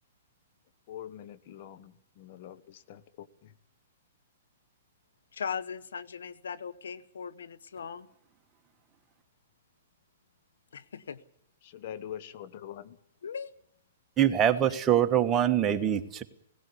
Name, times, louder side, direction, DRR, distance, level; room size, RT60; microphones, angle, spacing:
voice 1, 0.9-3.5 11.6-13.0, left 10 dB, 50° left, 1.2 m, -44 dB
voice 2, 5.3-8.1 10.7-11.2 13.2-13.5, left 6 dB, 80° left, 0.9 m, -38 dB
voice 3, 14.2-16.2, right 10 dB, 25° right, 1.3 m, -24 dB
18.0 x 16.5 x 9.8 m
hypercardioid pair, 125°, 0 cm